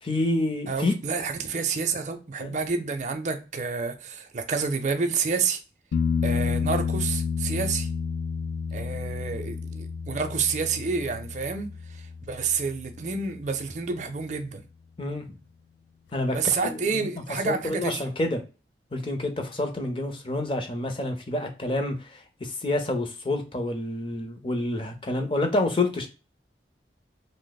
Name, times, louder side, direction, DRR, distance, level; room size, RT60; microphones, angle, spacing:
voice 1, 0.0-0.9 2.4-2.6 15.0-15.4 16.1-17.1 17.4-18.4 18.9-26.1, left 2 dB, 30° left, 0.5 m, -28 dB
voice 2, 0.7-5.6 6.2-7.9 8.7-14.6 16.3-18.0, right 5 dB, 40° right, 0.5 m, -29 dB
sound 1, 5.9-13.5 16.6-16.7, left 6 dB, 85° left, 0.3 m, -30 dB
2.9 x 2.0 x 3.9 m
head